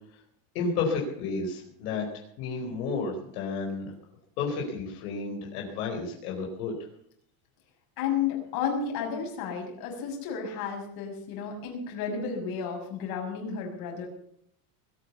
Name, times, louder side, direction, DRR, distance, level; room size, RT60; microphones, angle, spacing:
voice 1, 0.5-2.1 2.4-3.9 4.4-6.8, left 4 dB, 85° left, 0 dB, 4.7 m, -31 dB
voice 2, 8.0-14.1, left 6 dB, 50° left, 1 dB, 6.3 m, -32 dB
20.5 x 9.1 x 7.1 m, 0.69 s
cardioid pair, 160°, 46 cm